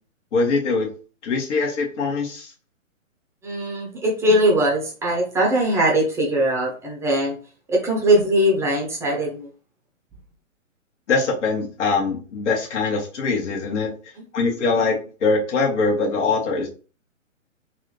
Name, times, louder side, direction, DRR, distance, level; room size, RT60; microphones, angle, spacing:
voice 1, 0.3-0.9 1.2-2.5 11.1-13.9 14.3-16.7, left 4 dB, 60° left, 0 dB, 1.8 m, -22 dB
voice 2, 3.4-7.4 7.7-9.5, right 1 dB, 5° right, -2 dB, 0.8 m, -20 dB
4.0 x 2.6 x 3.3 m, 0.37 s
hypercardioid pair, 135°, 40 cm